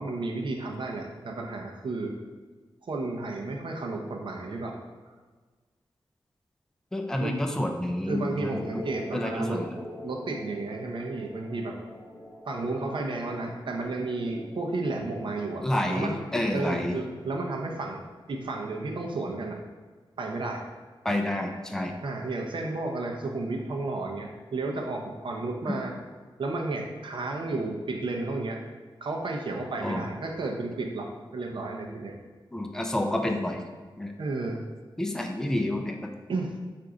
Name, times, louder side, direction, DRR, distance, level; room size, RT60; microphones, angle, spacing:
voice 1, 0.0-2.1 2.8-4.8 7.2-7.4 8.1-9.6 10.0-11.8 12.5-15.6 15.9-16.2 16.5-18.0 18.3-19.6 20.2-20.6 22.0-26.0 26.4-28.6 29.0-32.2 34.2-34.6 36.3-36.5, right 2 dB, 65° right, 1 dB, 0.6 m, -32 dB
voice 2, 6.9-8.6 9.1-9.8 15.6-17.0 21.0-21.9 29.8-30.0 32.5-33.6 34.0-34.1 35.0-36.1, left 1 dB, 5° left, 4 dB, 0.4 m, -29 dB
sound 1, 8.5-16.1, left 1 dB, 20° left, 0.8 m, -44 dB
4.5 x 2.5 x 3.8 m, 1.4 s
wide cardioid pair, 110°, 9 cm